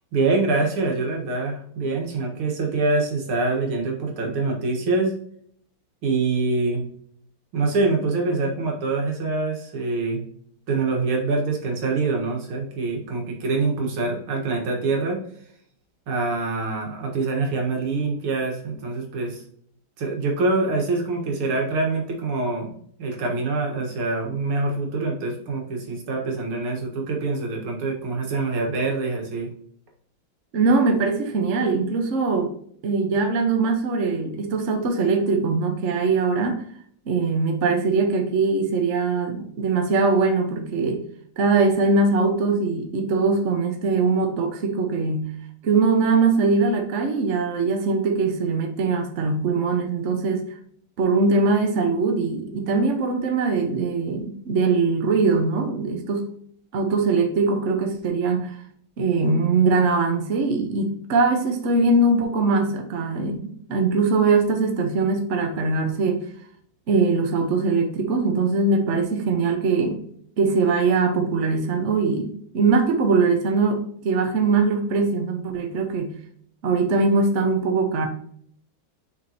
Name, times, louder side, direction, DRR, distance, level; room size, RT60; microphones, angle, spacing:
voice 1, 0.1-5.1 6.0-6.8 7.5-10.2 10.7-15.2 16.1-19.4 20.0-22.7 23.0-29.5, right 3 dB, 80° right, 0 dB, 2.4 m, -25 dB
voice 2, 30.5-32.5 32.8-36.6 37.1-41.0 41.4-45.3 45.6-50.4 51.0-56.3 56.7-58.6 59.0-66.2 66.9-70.0 70.4-76.1 76.6-78.1, right 4 dB, 45° right, 4 dB, 1.1 m, -21 dB
6.7 x 5.2 x 2.8 m, 0.64 s
omnidirectional pair, 2.3 m